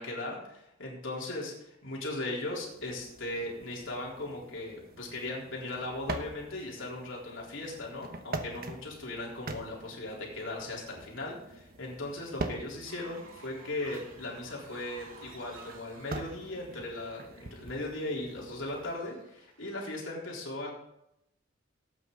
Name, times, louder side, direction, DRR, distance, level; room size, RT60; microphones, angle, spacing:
voice 1, 0.0-20.7, left 2 dB, 70° left, -3 dB, 4.1 m, -38 dB
sound 1, 2.4-18.9, right 2 dB, 50° right, 1.2 m, -44 dB
Fowl, 12.7-19.7, right 3 dB, 80° right, 2.5 m, -54 dB
17.5 x 9.3 x 4.0 m, 0.81 s
head